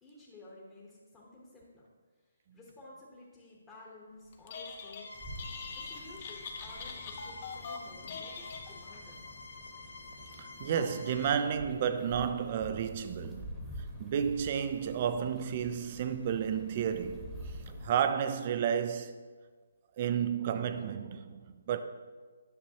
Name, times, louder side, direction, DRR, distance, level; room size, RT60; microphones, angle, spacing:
voice 1, 0.0-1.9 2.1-5.1 5.7-9.3, left 2 dB, 15° left, 1.2 m, -53 dB
Telephone, 4.3-5.1 5.4-9.1, left 5 dB, 40° left, 0.8 m, -43 dB
sound 1, 5.0-11.3, left 3 dB, 80° left, 1.1 m, -48 dB
sound 2, 5.1-17.9, equal, ahead, 1.2 m, -48 dB
voice 2, 10.4-13.6 14.0-17.6 17.8-19.1 20.0-21.8, right 8 dB, 40° right, 0.5 m, -32 dB
9.8 x 6.6 x 2.9 m
hypercardioid pair, 150°, 0 cm